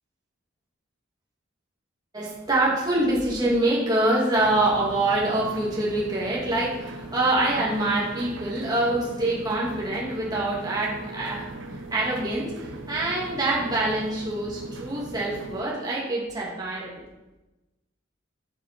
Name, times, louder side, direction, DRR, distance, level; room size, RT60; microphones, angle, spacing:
voice 1, 2.1-17.0, right 2 dB, 20° right, -5 dB, 2.7 m, -25 dB
sound 1, 4.4-15.6, right 2 dB, 70° right, 0.9 m, -39 dB
9.4 x 8.1 x 4.5 m, 1.0 s
head